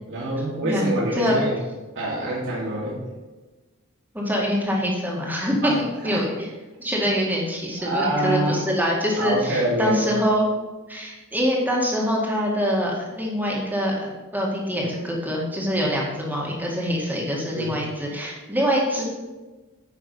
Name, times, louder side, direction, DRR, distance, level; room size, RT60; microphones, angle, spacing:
voice 1, 0.0-1.6 1.9-3.0 5.6-5.8 6.1-6.2 7.8-8.7 9.2-10.1 17.5-17.7, right 1 dB, 55° right, -6 dB, 2.4 m, -25 dB
voice 2, 0.6-1.4 4.1-5.7 6.0-6.5 6.8-10.5 10.9-19.0, equal, 10° right, -3 dB, 1.9 m, -24 dB
9.3 x 5.8 x 5.4 m, 1.2 s
head